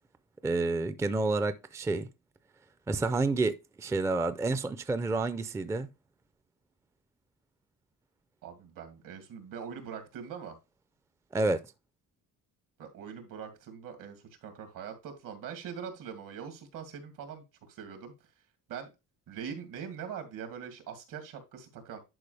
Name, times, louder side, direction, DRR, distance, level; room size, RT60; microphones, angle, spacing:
voice 1, 0.4-2.1 2.9-5.9 11.3-11.6, right 3 dB, 10° right, 0.4 m, -29 dB
voice 2, 8.4-10.5 12.8-18.1 18.7-18.9 19.3-22.0, right 7 dB, 75° right, 2.5 m, -42 dB
11.0 x 4.8 x 3.3 m
cardioid pair, 175°, 32 cm